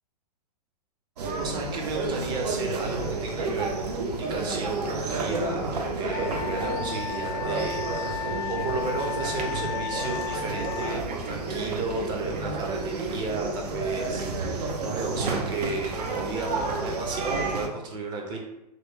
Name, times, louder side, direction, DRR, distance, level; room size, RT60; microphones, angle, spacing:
sound 1, 1.2-17.7, right 3 dB, 75° right, 0.6 m, -31 dB
voice 1, 1.4-18.4, right 3 dB, 20° right, 1 dB, 0.5 m, -34 dB
Wind instrument woodwind instrument, 6.1-11.0, left 8 dB, 30° left, 0.5 m, -34 dB
3.1 x 2.1 x 3.4 m, 0.89 s
hypercardioid pair, 130°, 21 cm